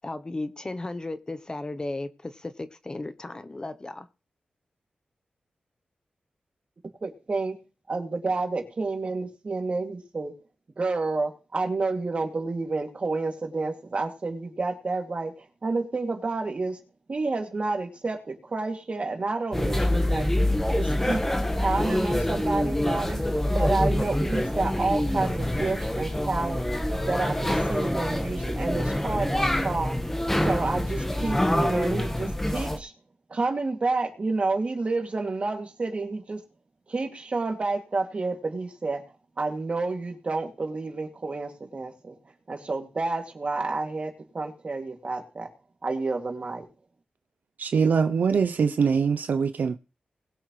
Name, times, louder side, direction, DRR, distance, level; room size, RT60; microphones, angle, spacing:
voice 1, 0.0-4.1, left 2 dB, 25° left, 0.8 m, -35 dB
voice 2, 7.0-7.5 7.9-10.3 10.8-16.8 17.1-20.3 20.7-21.2 21.6-23.2 23.5-26.6 27.1-30.0 30.4-32.9 33.3-36.4 36.9-39.0 39.4-42.1 42.5-45.5 45.8-46.6, right 3 dB, 45° right, 2.5 m, -29 dB
sound 1, 19.5-32.8, left 1 dB, 10° left, 1.3 m, -26 dB
voice 3, 47.6-49.8, right 6 dB, 70° right, 0.6 m, -23 dB
20.5 x 7.7 x 3.2 m
wide cardioid pair, 95°, 3 cm